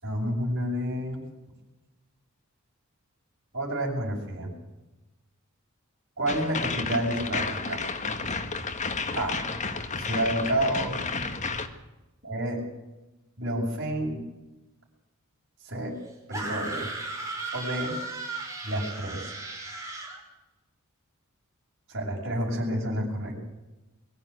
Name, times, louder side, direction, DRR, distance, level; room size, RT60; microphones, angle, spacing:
voice 1, 0.0-1.2 3.5-4.5 6.2-7.8 9.1-9.4 10.0-11.0 12.2-12.6 13.4-14.2 15.6-15.9 16.3-16.9 17.5-18.0 18.6-19.3 21.9-23.3, right 1 dB, 50° right, -5 dB, 7.0 m, -29 dB
sound 1, 6.3-11.7, left 4 dB, 35° left, 1.7 m, -32 dB
sound 2, 16.3-20.2, right 3 dB, 15° right, 5.8 m, -35 dB
23.0 x 15.0 x 8.5 m, 1.0 s
head